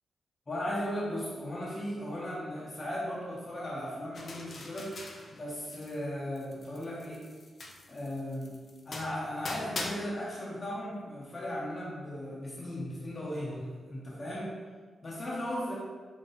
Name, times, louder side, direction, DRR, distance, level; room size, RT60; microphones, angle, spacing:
voice 1, 0.5-5.0 5.3-7.3 7.9-8.6 8.9-13.6 13.9-14.6 15.0-15.7, left 1 dB, 35° left, -6 dB, 0.8 m, -36 dB
sound 1, 4.2-6.1 6.4-9.9, left 2 dB, 55° left, 0.5 m, -42 dB
4.1 x 2.4 x 3.7 m, 1.5 s
cardioid pair, 85°, 0 cm